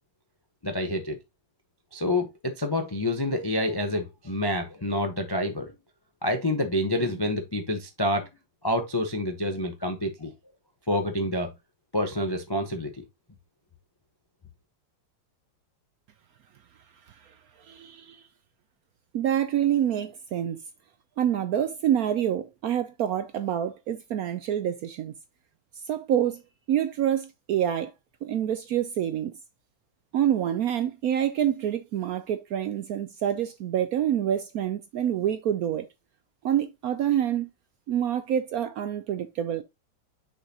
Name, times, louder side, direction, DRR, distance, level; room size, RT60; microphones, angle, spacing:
voice 1, 0.6-1.2 1.9-5.7 6.2-8.3 8.6-10.3 10.9-11.5 11.9-13.0, left 1 dB, 40° left, 0.3 m, -28 dB
voice 2, 17.6-18.2 19.1-20.6 21.2-25.1 25.8-26.4 26.7-27.9 28.2-29.3 30.1-35.9 36.4-37.5 37.9-39.6, right 10 dB, 70° right, 0.9 m, -27 dB
6.4 x 6.0 x 2.8 m
omnidirectional pair, 2.0 m